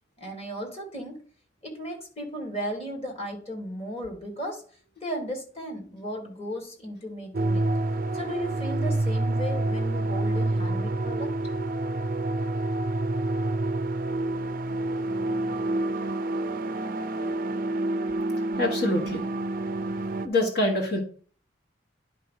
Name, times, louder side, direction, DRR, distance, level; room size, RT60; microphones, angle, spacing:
voice 1, 0.2-1.2 1.6-4.6 5.0-7.7 8.1-11.3, equal, 30° left, 2 dB, 1.9 m, -35 dB
sound 1, 7.3-20.3, right 2 dB, 45° right, 0.5 m, -28 dB
voice 2, 18.6-19.2 20.2-21.0, left 1 dB, 55° left, 2 dB, 1.6 m, -25 dB
10.0 x 3.6 x 5.6 m, 0.43 s
head